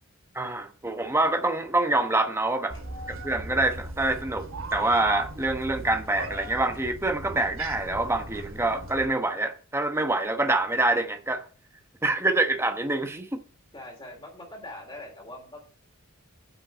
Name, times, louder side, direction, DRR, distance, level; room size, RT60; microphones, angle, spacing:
voice 1, 0.3-2.8 3.1-4.5 4.7-11.5 12.0-13.4, right 2 dB, 10° right, 1.0 m, -26 dB
Meow, 2.7-9.1, right 2 dB, 65° right, 2.2 m, -38 dB
voice 2, 13.7-15.7, left 1 dB, 25° left, 3.2 m, -42 dB
8.9 x 6.0 x 7.4 m
head